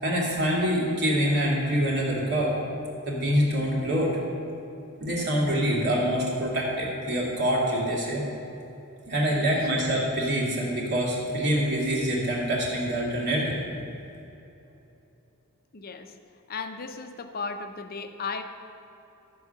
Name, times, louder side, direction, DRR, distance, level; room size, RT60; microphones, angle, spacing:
voice 1, 0.0-2.5 3.1-4.2 5.0-8.2 9.1-13.6, equal, 50° right, -4 dB, 2.5 m, -25 dB
voice 2, 15.7-16.1 16.5-18.4, left 4 dB, 45° left, 7 dB, 0.6 m, -35 dB
13.0 x 4.9 x 6.8 m, 2.8 s
head